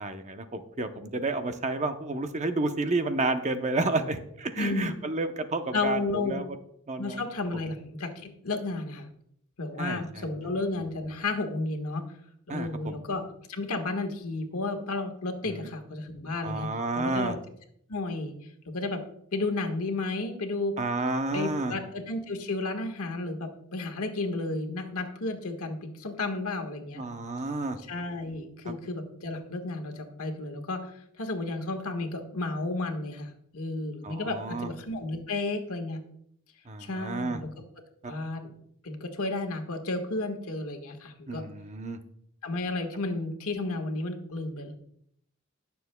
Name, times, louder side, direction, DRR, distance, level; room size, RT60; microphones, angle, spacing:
voice 1, 0.0-6.6 6.9-7.2 9.8-10.3 12.5-13.0 15.4-15.7 16.4-17.3 20.8-21.7 26.9-27.8 28.6-28.7 34.0-34.7 36.7-37.4 38.0-38.1 41.3-42.0, right 2 dB, 30° right, 8 dB, 0.7 m, -31 dB
voice 2, 4.6-4.9 5.7-6.4 7.0-9.1 9.6-12.0 12.5-13.2 13.5-16.7 16.9-17.4 17.9-18.3 18.7-19.0 19.3-20.8 21.3-27.0 27.9-30.9 31.2-36.0 36.8-37.5 38.1-38.5 38.8-41.4 42.4-44.7, left 2 dB, 75° left, 4 dB, 1.5 m, -32 dB
20.5 x 6.9 x 2.2 m, 0.71 s
head